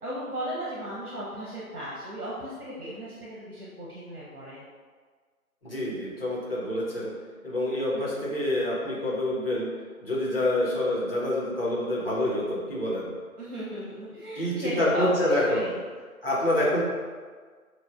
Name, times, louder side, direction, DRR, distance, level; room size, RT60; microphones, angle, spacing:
voice 1, 0.0-4.6 13.4-15.8, equal, 75° right, -6 dB, 1.1 m, -36 dB
voice 2, 5.6-7.1 7.4-9.7 10.0-13.1 14.4-15.7 16.2-16.8, left 1 dB, 40° left, -7 dB, 1.1 m, -27 dB
6.3 x 2.5 x 2.4 m, 1.6 s
figure-of-eight pair, 165°, 45 cm